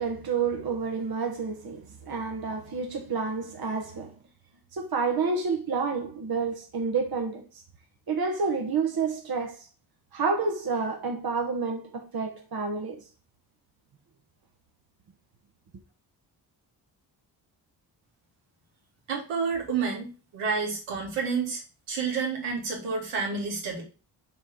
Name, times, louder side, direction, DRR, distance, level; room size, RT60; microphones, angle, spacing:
voice 1, 0.0-4.1 4.7-7.4 8.1-9.7 10.1-13.1, right 5 dB, 45° right, 1.5 m, -29 dB
voice 2, 19.1-21.6 21.9-23.8, right 5 dB, 80° right, 2.4 m, -29 dB
6.0 x 3.4 x 5.9 m
supercardioid pair, 40°, 49 cm